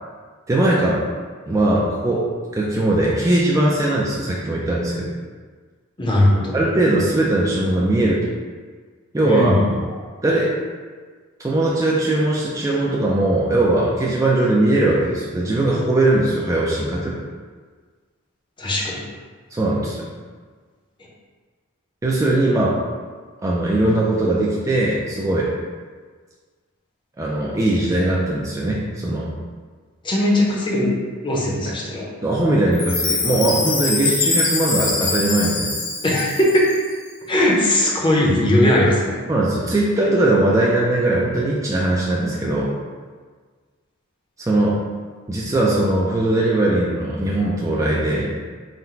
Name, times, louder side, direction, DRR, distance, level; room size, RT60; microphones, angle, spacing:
voice 1, 0.5-1.0 1.5-2.3 2.5-5.1 6.5-8.3 9.1-9.6 10.2-10.5 11.4-17.2 19.5-20.1 22.0-22.8 23.4-25.5 27.2-29.3 31.7-31.8 32.2-35.7 38.6-38.8 39.3-42.8 44.4-44.8 45.3-48.3, right 1 dB, 15° right, -5 dB, 0.4 m, -20 dB
voice 2, 6.0-6.6 9.2-9.7 18.6-19.0 30.0-32.1 36.0-36.7 37.3-39.2, left 1 dB, 25° left, -3 dB, 0.7 m, -19 dB
Chime, 32.7-36.9, left 3 dB, 65° left, 1.0 m, -23 dB
3.9 x 2.2 x 4.3 m, 1.5 s
head